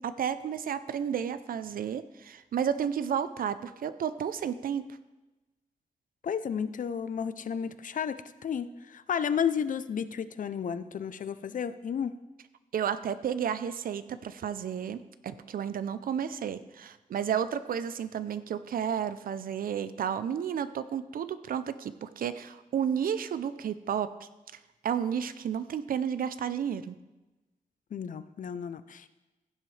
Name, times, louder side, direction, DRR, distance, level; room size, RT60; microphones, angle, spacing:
voice 1, 0.0-4.9 12.7-24.1 24.8-27.0, right 8 dB, 85° right, 13 dB, 0.5 m, -32 dB
voice 2, 6.2-12.1 27.9-29.1, left 7 dB, 65° left, 13 dB, 0.5 m, -32 dB
15.5 x 7.6 x 3.3 m, 1.1 s
cardioid pair, 80°, 14 cm